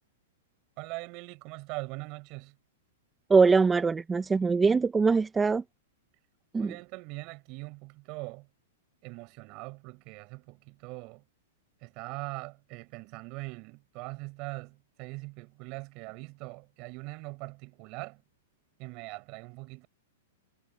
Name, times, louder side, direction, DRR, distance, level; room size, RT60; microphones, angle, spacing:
voice 1, 0.8-2.6 6.6-8.5 9.0-11.2 11.8-18.2 18.8-19.9, right 27 dB, 45° right, 7.2 m, -41 dB
voice 2, 3.3-5.6 6.5-6.7, right 4 dB, 15° right, 1.3 m, -22 dB
hypercardioid pair, 130°, 0 cm